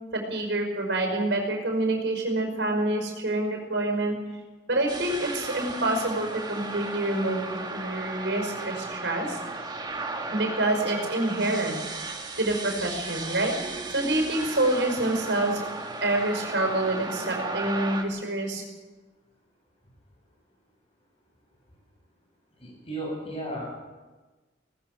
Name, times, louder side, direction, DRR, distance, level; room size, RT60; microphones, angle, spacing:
voice 1, 0.1-4.1 4.7-9.4 10.3-11.8 12.0-13.5 13.9-15.6 16.0-18.6, right 2 dB, 75° right, 3 dB, 5.5 m, -27 dB
sound 1, 4.9-18.0, right 3 dB, 25° right, 1.9 m, -35 dB
voice 2, 22.6-23.7, right 1 dB, 35° left, -2 dB, 7.4 m, -34 dB
20.0 x 19.5 x 6.8 m, 1.2 s
head